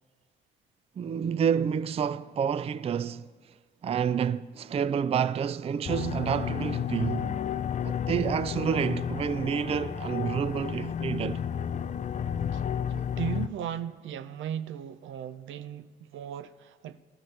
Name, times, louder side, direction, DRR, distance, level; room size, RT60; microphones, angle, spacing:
voice 1, 1.0-3.3 3.8-7.3 7.8-11.4, right 7 dB, 30° right, 0.4 m, -29 dB
sound 1, 5.8-13.5, left 8 dB, 40° left, 0.4 m, -32 dB
voice 2, 12.9-17.0, right 9 dB, 75° right, 0.6 m, -37 dB
21.0 x 14.0 x 3.3 m
cardioid pair, 90°, 20 cm